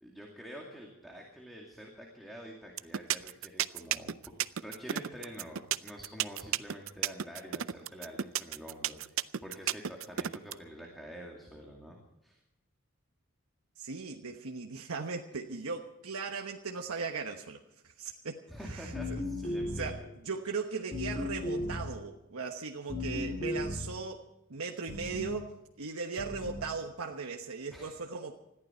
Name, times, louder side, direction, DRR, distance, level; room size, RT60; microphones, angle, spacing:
voice 1, 0.0-4.1 4.6-12.4 18.5-20.1 27.7-28.0, equal, ahead, -1 dB, 2.4 m, -47 dB
sound 1, 2.8-10.5, right 10 dB, 65° right, 0.5 m, -32 dB
voice 2, 13.8-19.2 19.8-25.5 25.8-28.3, right 4 dB, 85° right, 3 dB, 1.2 m, -38 dB
sound 2, 18.9-20.1 20.9-22.0 22.9-24.0 24.9-25.4 26.2-26.8, left 1 dB, 30° left, 2.3 m, -36 dB
21.0 x 14.5 x 4.4 m, 0.89 s
head